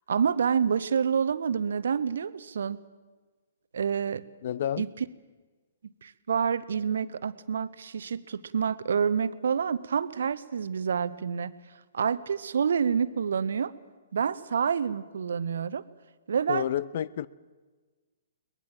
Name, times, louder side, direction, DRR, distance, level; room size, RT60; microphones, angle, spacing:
voice 1, 0.1-2.8 3.7-4.2 4.8-5.0 5.8-11.5 11.9-13.7 14.1-15.8 16.3-16.7, right 7 dB, 55° right, 0.9 m, -28 dB
voice 2, 4.4-4.9 16.5-17.3, left 10 dB, 45° left, 0.6 m, -30 dB
22.5 x 20.0 x 7.7 m
figure-of-eight pair, 120°, 0 cm